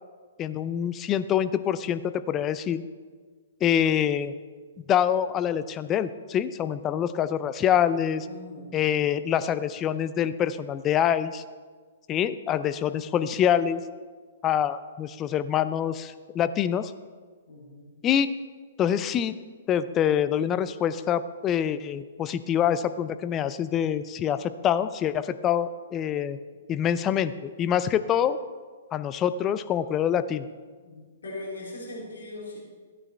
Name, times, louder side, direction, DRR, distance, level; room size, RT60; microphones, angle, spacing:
voice 1, 0.4-2.8 3.6-4.3 4.9-8.3 8.7-11.4 12.1-13.8 14.4-16.9 18.0-18.3 18.8-19.4 19.7-26.4 26.7-28.4 28.9-30.5, left 9 dB, 25° left, 13 dB, 0.5 m, -25 dB
voice 2, 8.2-8.7 17.5-17.9 30.8-32.6, left 2 dB, 75° left, -4 dB, 3.2 m, -40 dB
15.0 x 9.7 x 3.3 m, 1.5 s
figure-of-eight pair, 120°, 0 cm